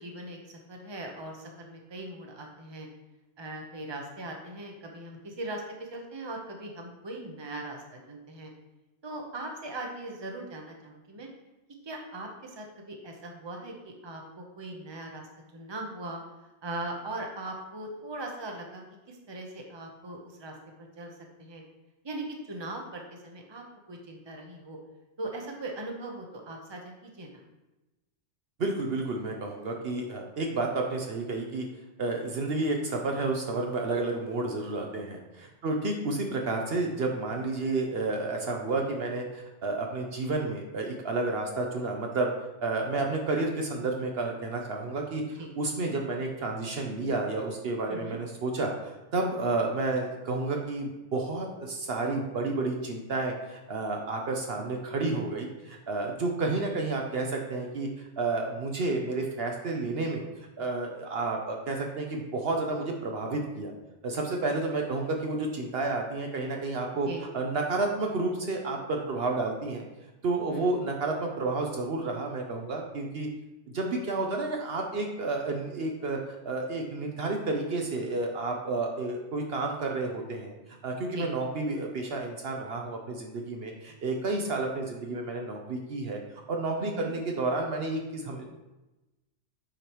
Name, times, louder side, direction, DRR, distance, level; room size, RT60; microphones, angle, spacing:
voice 1, 0.0-2.9 3.4-8.5 9.0-11.3 11.8-15.2 15.5-16.2 16.6-21.1 21.4-21.6 22.0-24.8 25.2-27.4 35.6-35.8 45.4-45.5 47.9-48.2 67.1-67.2 70.5-70.9 81.1-81.3 86.8-87.1, right 2 dB, 25° right, 1 dB, 0.9 m, -40 dB
voice 2, 28.6-31.7 32.0-42.3 42.6-60.2 60.6-63.7 64.0-69.8 70.2-73.3 73.7-76.2 76.4-80.5 80.8-86.2 86.5-88.4, right 3 dB, 60° right, 1 dB, 1.0 m, -31 dB
8.8 x 5.0 x 3.0 m, 1.0 s
omnidirectional pair, 1.2 m